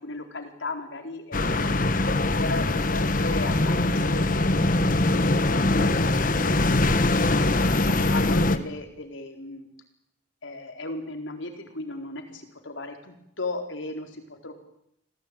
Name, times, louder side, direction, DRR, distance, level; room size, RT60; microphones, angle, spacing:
voice 1, 0.0-4.7 4.9-9.7 10.4-14.5, left 2 dB, 85° left, 5 dB, 4.2 m, -36 dB
sound 1, 1.3-8.6, left 2 dB, 45° left, 1.3 m, -22 dB
26.5 x 17.5 x 8.9 m, 0.77 s
head